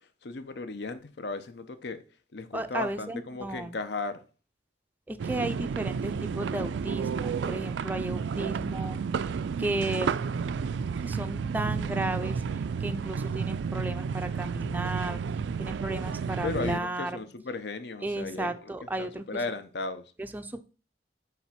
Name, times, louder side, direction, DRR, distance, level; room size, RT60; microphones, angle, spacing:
voice 1, 0.2-2.0 2.3-4.2 16.4-20.1, left 3 dB, 70° left, 0.7 m, -36 dB
voice 2, 2.5-3.8 5.1-9.3 9.6-10.2 11.0-12.4 12.8-15.2 15.6-17.3 18.0-19.2 20.2-20.6, right 1 dB, 10° right, 0.4 m, -34 dB
sound 1, 5.2-16.8, right 6 dB, 90° right, 0.3 m, -31 dB
7.2 x 3.4 x 5.8 m
head